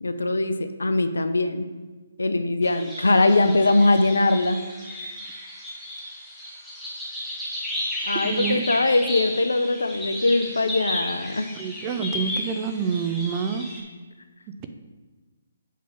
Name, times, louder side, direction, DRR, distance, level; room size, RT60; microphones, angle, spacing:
voice 1, 0.0-1.7 2.2-4.6 8.1-11.5, left 2 dB, 80° left, 9 dB, 0.6 m, -21 dB
sound 1, 2.6-13.8, left 1 dB, ahead, 1.4 m, -34 dB
voice 2, 8.2-8.7 11.6-13.7 14.6-14.7, right 6 dB, 30° right, 7 dB, 0.5 m, -27 dB
7.4 x 3.5 x 5.9 m, 1.3 s
figure-of-eight pair, 140°, 0 cm